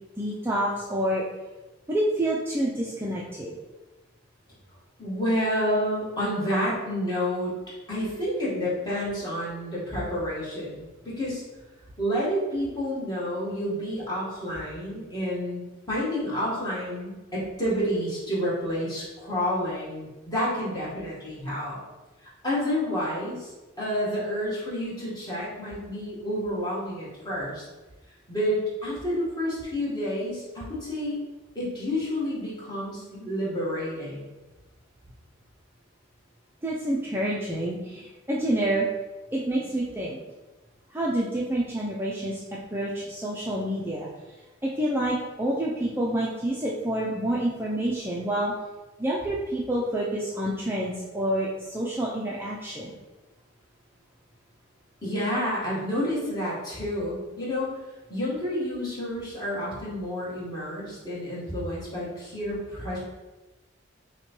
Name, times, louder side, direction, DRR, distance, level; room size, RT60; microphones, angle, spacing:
voice 1, 0.2-1.3 1.9-3.5 36.6-38.9 39.3-40.2 40.9-42.4 42.7-44.1 44.6-48.5 49.0-53.0, right 1 dB, 10° right, -5 dB, 0.4 m, -28 dB
voice 2, 5.0-7.5 7.9-11.4 12.0-21.8 22.2-27.6 28.3-31.1 31.5-34.3 55.0-57.7 58.1-63.0, equal, 20° left, -8 dB, 1.4 m, -29 dB
5.6 x 2.2 x 3.0 m, 1.1 s
head